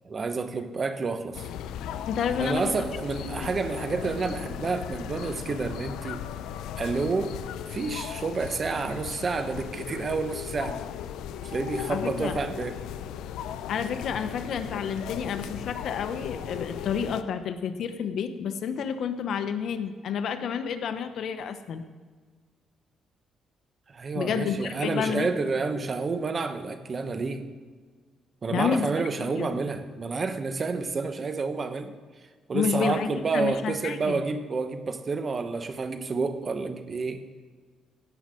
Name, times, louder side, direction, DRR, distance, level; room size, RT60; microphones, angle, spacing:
voice 1, 0.0-1.5 2.4-6.2 6.8-7.3 7.7-10.8 11.4-12.8 23.9-27.4 28.4-31.9 32.5-37.2, right 4 dB, 40° right, 8 dB, 1.2 m, -29 dB
sound 1, 1.3-17.2, left 9 dB, 90° left, 0.6 m, -37 dB
voice 2, 2.1-2.7 3.4-3.5 11.9-12.4 13.7-21.8 24.1-25.3 28.5-28.9 29.2-29.6 32.5-34.2, left 7 dB, 70° left, 9 dB, 1.0 m, -30 dB
17.0 x 5.7 x 7.7 m, 1.5 s
cardioid pair, 90°, 0 cm